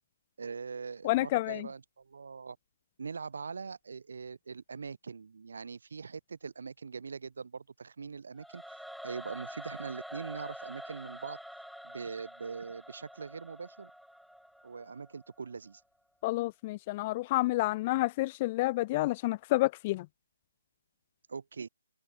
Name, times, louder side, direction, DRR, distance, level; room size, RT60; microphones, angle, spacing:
voice 1, 0.4-2.6 3.0-8.6 9.0-11.4 11.8-13.9 14.6-15.8 21.3-21.7, right 5 dB, 60° right, 4.2 m, -42 dB
voice 2, 1.0-1.7 16.2-20.1, left 19 dB, 25° left, 0.4 m, -29 dB
Singing / Musical instrument, 8.4-15.5, equal, ahead, 0.8 m, -47 dB
figure-of-eight pair, 150°, 0 cm